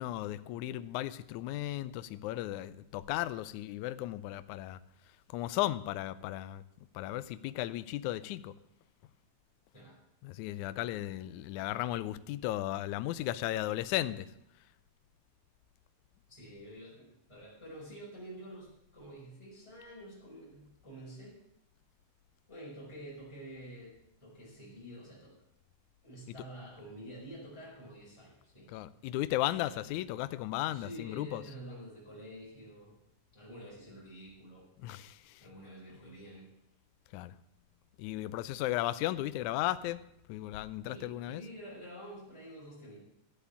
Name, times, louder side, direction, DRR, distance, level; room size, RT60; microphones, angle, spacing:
voice 1, 0.0-4.8 5.3-6.6 6.9-8.5 10.2-14.3 28.7-31.4 34.8-35.4 37.1-37.3 38.0-40.0 40.3-41.4, left 15 dB, 80° left, 1.8 m, -35 dB
voice 2, 16.3-21.4 22.5-23.9 24.2-25.3 26.0-28.7 29.6-30.0 30.7-32.9 33.3-34.7 35.4-36.5 40.9-43.0, right 1 dB, 10° left, 5.6 m, -48 dB
13.0 x 8.4 x 8.5 m
omnidirectional pair, 3.9 m